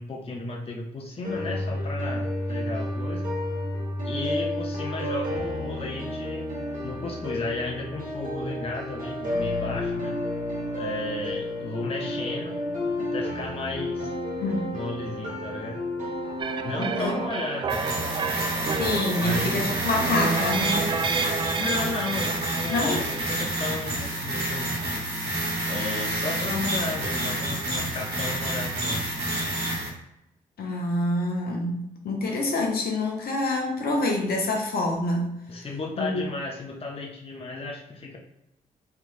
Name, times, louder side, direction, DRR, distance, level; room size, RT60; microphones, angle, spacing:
voice 1, 0.0-3.3 4.0-6.5 6.8-10.3 10.7-12.7 13.0-14.1 14.7-15.8 16.6-18.5 19.2-19.7 21.6-24.8 25.6-29.1 35.5-38.2, left 3 dB, 35° left, 0 dB, 0.7 m, -34 dB
sound 1, 1.2-17.2, left 1 dB, 50° right, 1.4 m, -31 dB
voice 2, 14.4-14.7 16.9-17.1 18.8-20.9 22.7-23.0 30.6-35.3 36.0-36.2, left 2 dB, 65° left, 0 dB, 0.9 m, -26 dB
sound 2, 16.4-23.4, right 5 dB, 30° right, 0.3 m, -30 dB
sound 3, 17.7-29.9, right 1 dB, 70° right, 1.3 m, -29 dB
3.4 x 3.0 x 2.5 m, 0.86 s
hypercardioid pair, 45°, 17 cm